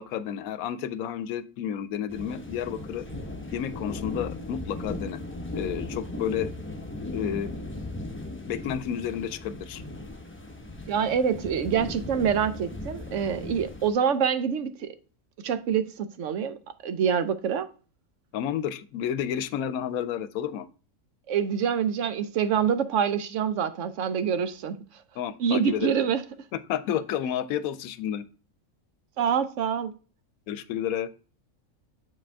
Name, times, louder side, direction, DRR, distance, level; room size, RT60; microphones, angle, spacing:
voice 1, 0.0-3.1 3.5-5.2 5.5-6.5 7.1-7.5 8.5-9.8 18.3-20.7 25.2-25.9 26.5-28.3 30.5-31.1, left 9 dB, 85° left, 1.0 m, -31 dB
sound 1, 2.1-13.9, left 2 dB, 10° left, 0.7 m, -37 dB
voice 2, 10.9-14.9 15.4-16.6 16.8-17.7 21.3-24.8 25.4-26.2 29.2-29.9, right 7 dB, 65° right, 0.9 m, -26 dB
7.5 x 4.9 x 3.4 m
omnidirectional pair, 1.4 m